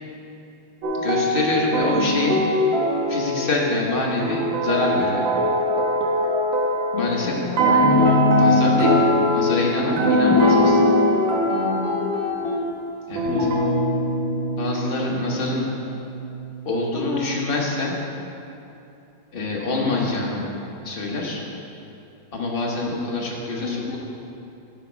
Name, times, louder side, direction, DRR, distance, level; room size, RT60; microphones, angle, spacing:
sound 1, 0.8-3.8 4.2-7.2 7.6-12.5 13.2-13.6, equal, 80° right, 1.7 m, -22 dB
voice 1, 0.9-2.4 3.1-5.3 6.9-7.3 8.3-10.8 13.1-13.5 14.6-15.6 16.6-18.0 19.3-20.4 20.8-21.4 22.3-24.0, left 2 dB, 35° left, -2 dB, 1.1 m, -25 dB
voice 2, 6.9-8.2 11.5-12.1 16.9-17.3 23.6-24.0, left 4 dB, 75° left, 0 dB, 0.6 m, -30 dB
Guitar, 7.8-9.0 10.3-11.2 11.5-12.7 13.3-16.7, left 2 dB, 55° left, 1.5 m, -23 dB
10.5 x 4.5 x 5.1 m, 2.8 s
omnidirectional pair, 2.1 m